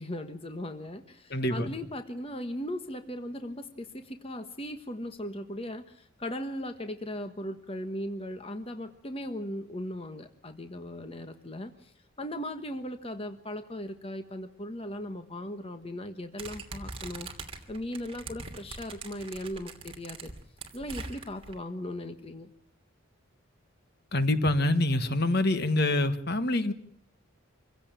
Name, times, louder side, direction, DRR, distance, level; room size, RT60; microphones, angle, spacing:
voice 1, 0.0-11.9 12.2-17.3 17.7-20.3 20.7-22.5, left 1 dB, 25° left, 7 dB, 1.3 m, -38 dB
voice 2, 1.3-1.7 24.1-26.7, left 1 dB, 50° left, 10 dB, 1.5 m, -26 dB
sound 1, 16.4-21.5, right 3 dB, 25° right, 2.7 m, -42 dB
26.0 x 16.0 x 8.9 m, 0.66 s
head